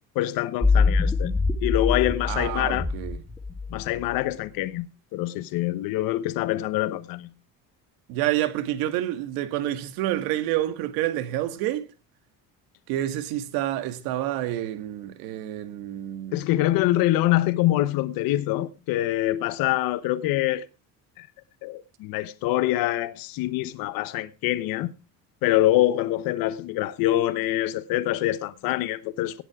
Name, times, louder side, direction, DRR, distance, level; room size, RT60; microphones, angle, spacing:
voice 1, 0.1-1.3 1.6-2.9 3.7-4.9 5.1-7.3 16.3-20.7 21.2-21.3 21.6-24.9 25.4-29.4, left 15 dB, 75° left, 1.1 m, -25 dB
sound 1, 0.6-4.1, left 4 dB, 5° left, 2.2 m, -24 dB
voice 2, 2.3-3.2 8.1-11.9 12.9-16.4, right 13 dB, 85° right, 1.9 m, -28 dB
17.5 x 7.3 x 4.8 m
cardioid pair, 110°, 35 cm